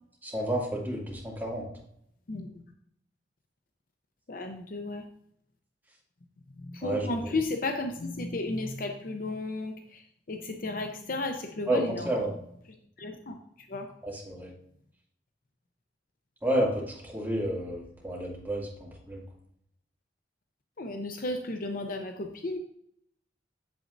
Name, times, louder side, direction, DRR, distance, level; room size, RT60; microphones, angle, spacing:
voice 1, 0.2-1.7 6.8-7.1 11.7-11.8 12.1-12.3 14.1-14.5 16.4-19.2, right 1 dB, 10° right, -4 dB, 2.3 m, -30 dB
voice 2, 4.3-5.0 6.6-12.1 13.0-13.9 20.8-22.6, left 2 dB, 55° left, 5 dB, 0.6 m, -34 dB
8.4 x 7.2 x 2.6 m, 0.72 s
head